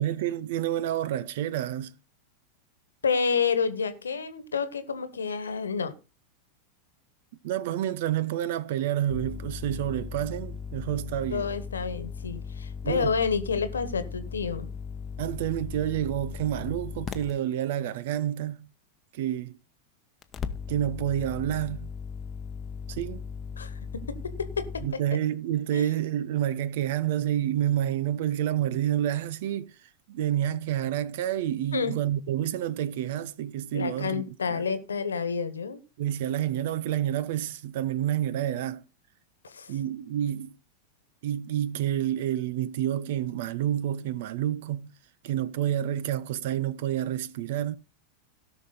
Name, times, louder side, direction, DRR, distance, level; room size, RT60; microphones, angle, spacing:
voice 1, 0.0-1.9 7.4-11.5 12.8-13.1 15.2-18.7 19.1-19.6 20.7-21.9 22.9-23.2 24.8-29.7 30.1-34.6 36.0-38.8 39.7-40.5 41.2-44.9 45.2-47.8, right 11 dB, 50° right, 0.7 m, -29 dB
voice 2, 3.0-5.9 11.3-14.7 23.6-24.8 25.7-25.9 31.7-32.0 33.7-35.8 39.4-39.7, left 5 dB, 70° left, 1.4 m, -29 dB
sound 1, 9.1-17.3 20.2-24.9, left 5 dB, 20° left, 1.0 m, -38 dB
17.5 x 6.0 x 4.0 m
figure-of-eight pair, 90°, 0 cm